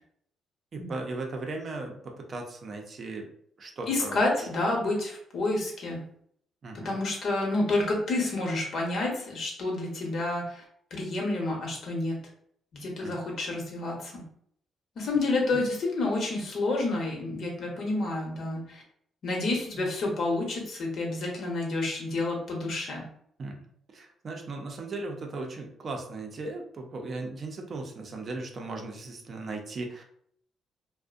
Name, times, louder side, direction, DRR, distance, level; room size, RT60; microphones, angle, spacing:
voice 1, 0.7-3.3 3.6-4.5 6.6-6.9 13.0-13.2 15.5-15.6 19.8-19.9 23.4-30.0, right 3 dB, 45° right, 2 dB, 0.5 m, -37 dB
voice 2, 3.9-6.0 6.7-10.6 10.9-12.2 12.7-14.3 15.0-18.8 19.2-23.1, left 2 dB, 60° left, -1 dB, 0.9 m, -29 dB
2.5 x 2.1 x 2.4 m, 0.66 s
cardioid pair, 90°, 0 cm